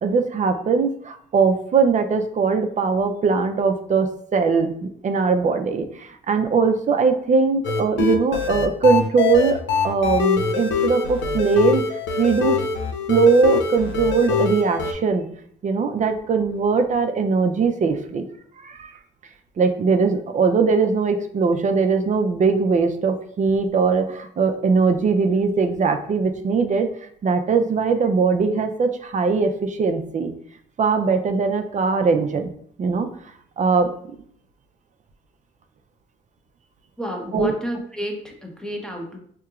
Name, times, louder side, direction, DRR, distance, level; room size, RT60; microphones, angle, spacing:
voice 1, 0.0-9.6 9.8-11.8 12.2-12.6 13.1-15.3 15.6-18.3 18.6-18.9 19.6-26.9 27.2-30.3 30.8-32.5 32.8-33.1 33.6-33.9 37.3-37.5, right 4 dB, 40° right, 6 dB, 0.5 m, -20 dB
sound 1, 7.6-14.9, left 5 dB, 70° left, 0.5 m, -23 dB
voice 2, 37.0-39.2, equal, 5° left, 1 dB, 0.8 m, -30 dB
4.4 x 2.9 x 2.4 m, 0.62 s
cardioid pair, 90°, 20 cm